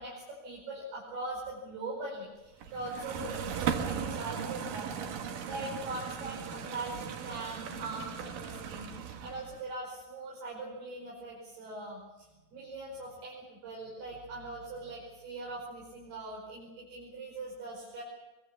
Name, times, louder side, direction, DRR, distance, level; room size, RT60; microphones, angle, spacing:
voice 1, 0.0-18.0, right 2 dB, 80° right, -4 dB, 7.4 m, -41 dB
sound 1, 2.6-9.6, right 7 dB, 65° right, 3.0 m, -37 dB
25.0 x 24.0 x 7.1 m, 1.1 s
omnidirectional pair, 4.5 m